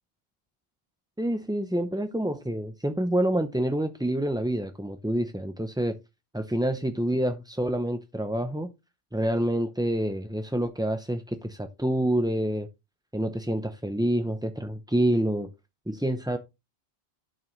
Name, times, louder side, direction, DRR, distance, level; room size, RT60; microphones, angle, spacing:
voice 1, 1.2-6.0 6.3-8.7 9.1-12.7 13.1-15.5 15.9-16.4, right 1 dB, 5° right, 0.4 m, -27 dB
11.0 x 6.3 x 3.1 m
omnidirectional pair, 1.1 m